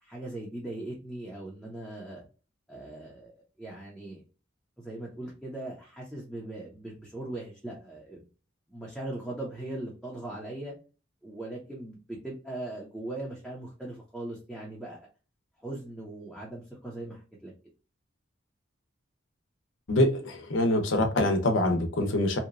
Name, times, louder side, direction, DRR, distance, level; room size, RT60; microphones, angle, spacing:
voice 1, 0.0-2.2 2.7-4.2 4.8-8.2 8.7-10.7 11.2-15.0 15.6-17.5, right 1 dB, ahead, 0.6 m, -39 dB
voice 2, 19.9-22.4, left 1 dB, 75° left, 0.7 m, -25 dB
2.8 x 2.2 x 2.4 m
head